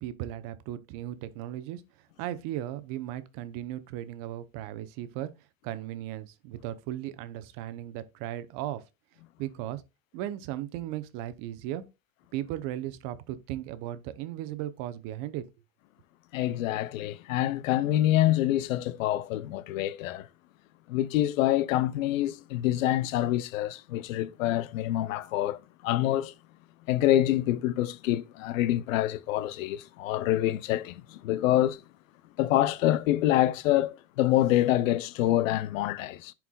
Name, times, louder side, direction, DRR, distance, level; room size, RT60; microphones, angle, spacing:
voice 1, 0.0-1.8 2.2-5.3 5.6-8.8 9.4-9.8 10.1-11.8 12.3-15.5, right 13 dB, 55° right, 0.8 m, -36 dB
voice 2, 16.3-20.3 20.9-26.3 26.9-31.8 32.4-36.3, left 14 dB, 80° left, 0.6 m, -26 dB
11.0 x 4.6 x 2.3 m
supercardioid pair, 110°, 40 cm